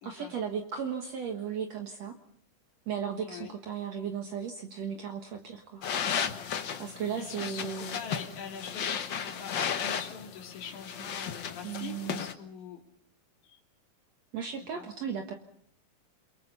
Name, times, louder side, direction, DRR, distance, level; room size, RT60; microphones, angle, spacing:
voice 1, 0.0-2.2 2.9-5.8 6.8-8.0 11.6-12.2 14.3-15.3, right 7 dB, 60° right, 3 dB, 2.5 m, -36 dB
voice 2, 3.3-3.6 7.2-12.8 13.4-13.6 14.7-14.9, left 6 dB, 70° left, -1 dB, 4.1 m, -44 dB
sound 1, 5.8-12.3, left 7 dB, 55° left, 1.4 m, -34 dB
28.0 x 23.0 x 5.5 m, 0.64 s
omnidirectional pair, 3.6 m